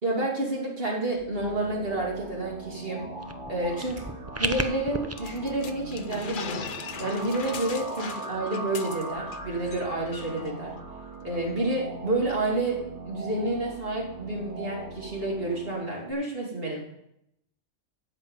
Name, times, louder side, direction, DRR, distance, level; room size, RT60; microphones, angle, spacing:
voice 1, 0.0-3.0 3.5-4.0 4.4-6.6 7.0-10.7 11.2-16.8, right 2 dB, 50° right, -2 dB, 2.6 m, -29 dB
sound 1, 1.1-16.1, right 2 dB, 70° right, 2.7 m, -40 dB
sound 2, 3.2-5.1, right 2 dB, 20° right, 0.4 m, -33 dB
sound 3, 5.2-9.4 9.7-9.8 10.1-10.5, left 6 dB, 50° left, 0.8 m, -39 dB
13.0 x 5.4 x 8.6 m, 0.80 s
omnidirectional pair, 1.3 m